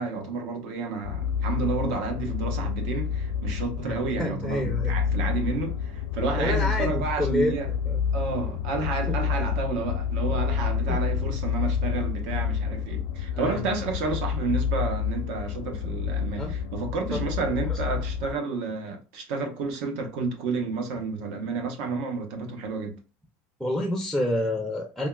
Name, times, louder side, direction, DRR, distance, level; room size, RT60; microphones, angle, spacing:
voice 1, 0.0-7.7 8.1-23.0, right 4 dB, 75° right, 0.8 m, -31 dB
sound 1, 1.0-18.3, left 7 dB, 70° left, 0.6 m, -29 dB
voice 2, 3.8-5.0 6.4-8.0 9.1-9.2 10.9-11.0 13.3-13.6 16.4-16.6 17.1-17.2 17.6-17.9 18.2-18.3 23.6-25.1, left 1 dB, ahead, 0.4 m, -29 dB
3.4 x 2.4 x 2.2 m
cardioid pair, 155°, 5 cm